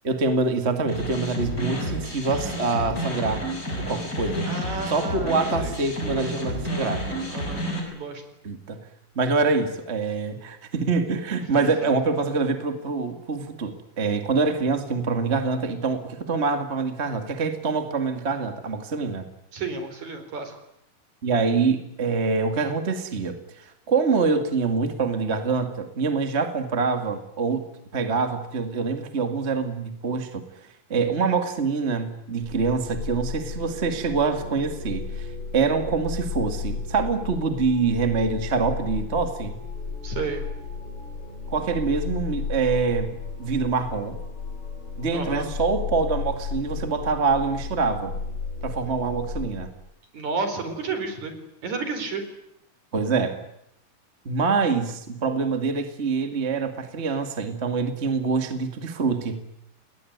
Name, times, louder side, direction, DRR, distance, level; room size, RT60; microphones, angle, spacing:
voice 1, 0.0-3.4 3.8-4.5 4.9-7.0 8.4-8.8 9.2-19.3 21.2-27.7 27.9-30.5 30.9-39.6 41.5-44.2 45.0-48.1 48.6-49.7 52.9-53.4 54.3-59.4, right 4 dB, 25° right, 7 dB, 2.1 m, -25 dB
sound 1, 0.9-7.8, equal, 25° left, 7.0 m, -30 dB
voice 2, 4.5-5.7 7.3-8.2 11.6-11.7 19.5-20.5 40.0-40.4 45.1-45.5 50.1-51.3 51.6-52.2, right 4 dB, 60° right, 8 dB, 5.6 m, -31 dB
sound 2, 32.4-49.5, left 5 dB, 40° left, 8.3 m, -34 dB
29.0 x 20.5 x 9.5 m, 0.78 s
omnidirectional pair, 3.8 m